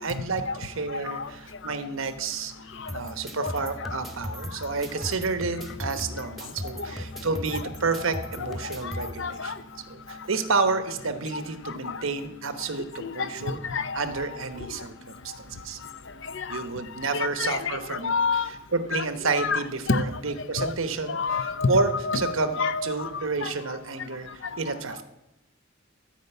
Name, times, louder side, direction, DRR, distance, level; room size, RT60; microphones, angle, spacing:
voice 1, 0.0-2.5 2.9-9.5 9.9-13.6 13.9-15.8 16.5-18.1 18.7-25.0, right 4 dB, 85° right, 9 dB, 1.1 m, -30 dB
sound 1, 2.9-9.1, equal, ahead, 1.1 m, -37 dB
voice 2, 8.1-9.5 11.8-12.0 13.0-14.1 16.3-16.6 17.1-18.5 18.9-19.0 19.4-20.0 20.5-20.7 21.1-23.5, left 4 dB, 65° left, 12 dB, 0.7 m, -29 dB
13.5 x 5.2 x 8.1 m, 0.90 s
head